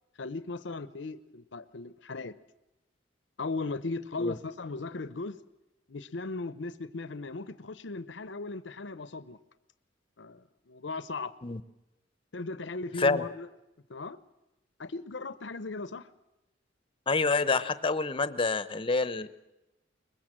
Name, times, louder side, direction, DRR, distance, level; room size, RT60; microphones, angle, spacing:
voice 1, 0.2-2.3 3.4-5.4 5.9-9.4 10.2-11.3 12.3-13.5 13.9-14.2 14.8-16.1, left 3 dB, 70° left, 14 dB, 0.8 m, -37 dB
voice 2, 17.1-19.3, left 3 dB, 30° left, 13 dB, 0.8 m, -27 dB
23.0 x 20.5 x 7.6 m, 0.95 s
head